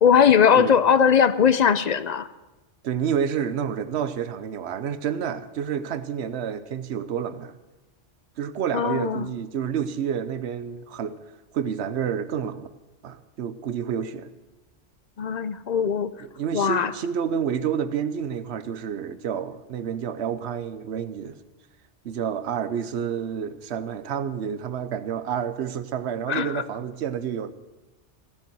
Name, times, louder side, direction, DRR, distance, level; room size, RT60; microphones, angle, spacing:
voice 1, 0.0-2.3 8.7-9.3 15.2-16.1 16.5-16.9 26.3-26.6, left 7 dB, 50° left, 0.5 m, -19 dB
voice 2, 2.8-7.5 8.4-11.2 11.5-12.7 13.0-14.3 16.2-21.4 22.0-27.5, right 8 dB, 70° right, 1.0 m, -29 dB
16.0 x 7.4 x 9.3 m
omnidirectional pair, 1.2 m